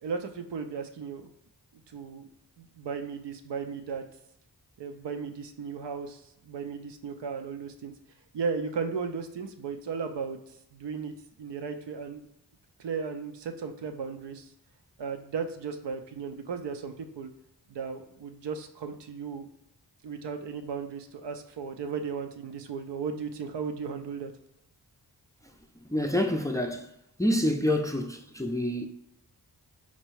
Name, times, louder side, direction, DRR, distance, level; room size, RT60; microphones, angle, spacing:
voice 1, 0.0-1.3 1.7-2.3 2.6-4.0 4.8-7.9 8.3-10.4 10.7-12.2 12.8-14.5 15.0-17.3 17.7-19.5 20.0-24.3, right 5 dB, 85° right, 0.6 m, -35 dB
voice 2, 25.9-26.9 27.2-28.9, left 1 dB, 10° left, 0.4 m, -27 dB
4.2 x 2.2 x 4.5 m
cardioid pair, 60°, 41 cm